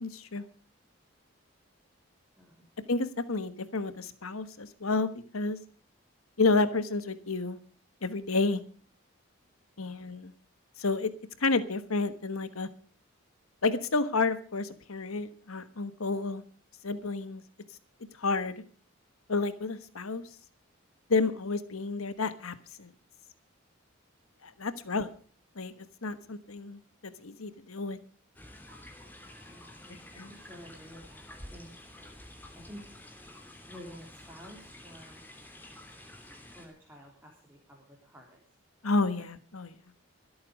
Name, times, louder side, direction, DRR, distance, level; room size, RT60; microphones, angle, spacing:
voice 1, 0.0-0.4 2.9-5.6 6.4-7.6 8.0-8.6 9.8-10.3 10.8-11.1 11.4-12.7 13.6-16.4 16.8-17.4 18.2-18.6 19.3-20.2 21.1-22.9 24.4-25.1 25.5-28.0 30.2-30.3 38.8-39.7, left 3 dB, 90° left, 12 dB, 1.3 m, -30 dB
sound 1, 28.4-36.7, left 1 dB, 10° left, 2.8 m, -50 dB
voice 2, 29.5-31.7 32.7-32.8 33.7-35.9 36.5-38.4, equal, 10° right, -2 dB, 3.4 m, -51 dB
24.0 x 8.7 x 5.2 m, 0.41 s
head